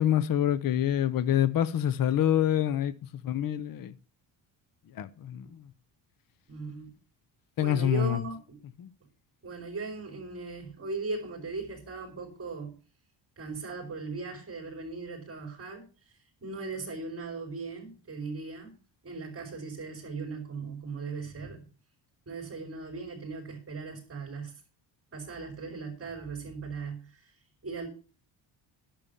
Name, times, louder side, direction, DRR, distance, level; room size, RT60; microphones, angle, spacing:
voice 1, 0.0-2.9 3.2-3.9 4.9-5.7 7.6-8.2 8.8-8.9, left 10 dB, 50° left, 0.8 m, -26 dB
voice 2, 6.5-6.9 7.6-8.6 9.4-12.8 13.4-15.9 16.4-18.8 19.0-21.6 22.3-24.5 25.1-27.3 27.6-27.9, right 4 dB, 30° right, 4.9 m, -38 dB
11.0 x 7.0 x 7.1 m
cardioid pair, 140°, 44 cm